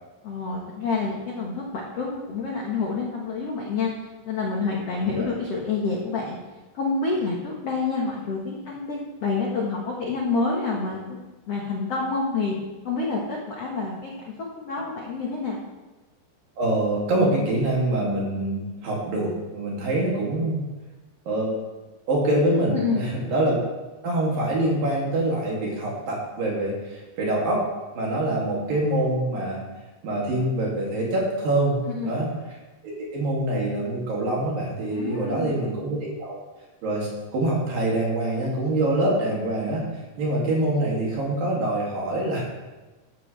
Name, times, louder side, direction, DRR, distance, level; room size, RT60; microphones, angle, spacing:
voice 1, 0.2-3.9 4.2-6.4 6.7-11.2 11.5-12.6 12.8-15.6 22.7-23.0 31.9-32.2 34.9-35.6, left 4 dB, 65° left, -2 dB, 1.6 m, -28 dB
voice 2, 16.6-20.6 21.3-21.5 22.1-23.7 24.0-27.6 28.0-29.6 30.0-32.3 32.8-36.4 36.8-39.8 40.2-42.4, right 1 dB, 55° right, -4 dB, 4.1 m, -25 dB
15.0 x 12.0 x 3.5 m, 1.2 s
omnidirectional pair, 5.3 m